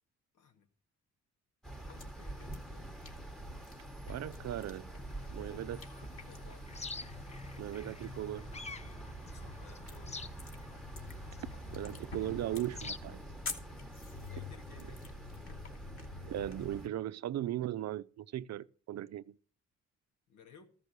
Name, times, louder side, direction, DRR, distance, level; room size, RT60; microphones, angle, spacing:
voice 1, 0.3-0.7 1.9-3.0 5.2-5.8 6.2-6.7 9.3-10.5 14.3-15.1 20.3-20.7, left 6 dB, 80° left, 2.2 m, -58 dB
sound 1, 1.6-16.9, equal, ahead, 1.4 m, -46 dB
sound 2, 1.7-16.9, left 3 dB, 45° left, 2.5 m, -51 dB
voice 2, 4.1-4.9 5.3-5.8 7.6-8.5 11.7-13.2 16.2-19.4, right 13 dB, 60° right, 0.6 m, -38 dB
sound 3, 5.1-13.0, left 4 dB, 20° left, 0.8 m, -49 dB
14.0 x 5.5 x 8.1 m
cardioid pair, 90°, 30 cm